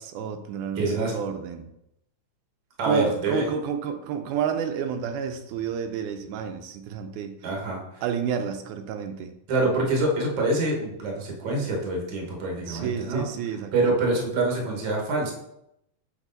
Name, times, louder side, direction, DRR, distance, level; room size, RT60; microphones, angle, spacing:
voice 1, 0.0-1.7 2.8-7.4 8.0-9.3 12.7-13.9, right 7 dB, 85° right, 7 dB, 2.0 m, -30 dB
voice 2, 0.7-1.2 2.8-3.5 7.4-8.0 9.5-13.3 13.7-15.3, right 2 dB, 50° right, 0 dB, 1.5 m, -26 dB
6.1 x 4.1 x 3.9 m, 0.82 s
omnidirectional pair, 3.5 m